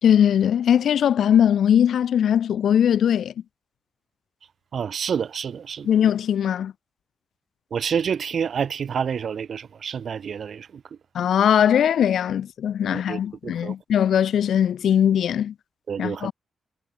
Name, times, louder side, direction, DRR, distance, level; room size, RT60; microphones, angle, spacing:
voice 1, 0.0-3.3 5.8-6.7 11.1-15.5 16.0-16.3, left 9 dB, 75° left, 3.5 m, -20 dB
voice 2, 4.7-5.9 7.7-10.7 12.8-13.7 15.9-16.3, right 7 dB, 55° right, 2.9 m, -28 dB
cardioid pair, 125°, 0 cm